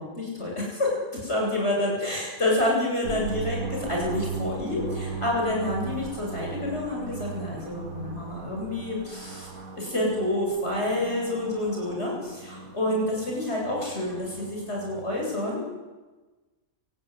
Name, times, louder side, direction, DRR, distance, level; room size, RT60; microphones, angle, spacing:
voice 1, 0.0-9.5 9.8-15.6, left 1 dB, 50° left, -2 dB, 8.1 m, -28 dB
sound 1, 3.0-15.1, right 4 dB, 85° right, 2.7 m, -37 dB
27.0 x 18.0 x 9.8 m, 1.2 s
omnidirectional pair, 1.5 m